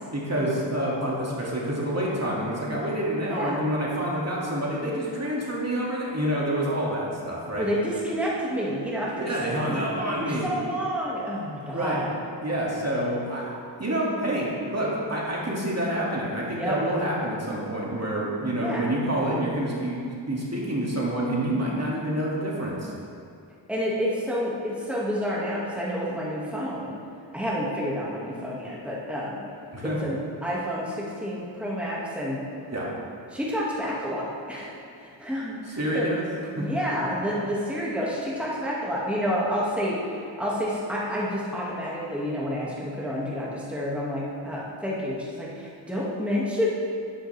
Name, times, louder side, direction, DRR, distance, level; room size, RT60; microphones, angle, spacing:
voice 1, 0.1-7.7 9.1-10.5 11.7-12.0 12.4-20.0 20.3-22.9 29.7-30.0 32.7-32.9 35.7-36.3 36.6-36.7 37.0-37.1, right 1 dB, 35° right, -5 dB, 2.3 m, -28 dB
voice 2, 3.3-3.6 7.6-12.1 16.6-16.8 18.6-19.1 23.7-26.9 27.3-29.4 29.8-32.4 33.3-36.1 36.6-46.7, equal, 5° right, -6 dB, 2.0 m, -29 dB
10.0 x 9.6 x 3.4 m, 2.4 s
cardioid pair, 45°, 46 cm